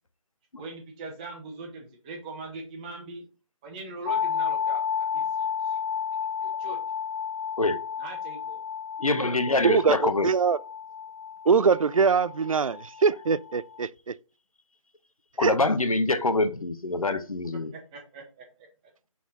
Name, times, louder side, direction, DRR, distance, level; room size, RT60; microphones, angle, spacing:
voice 1, 0.6-3.3 3.6-5.8 6.4-6.8 8.0-8.6 17.5-18.7, right 2 dB, 15° right, 1.0 m, -41 dB
sound 1, 4.1-13.8, left 7 dB, 35° left, 0.8 m, -32 dB
voice 2, 9.0-10.3 15.4-17.7, left 2 dB, 90° left, 0.9 m, -25 dB
voice 3, 9.6-10.6 11.5-14.1 15.4-15.6, right 5 dB, 75° right, 0.4 m, -23 dB
5.8 x 4.3 x 4.2 m
figure-of-eight pair, 155°, 18 cm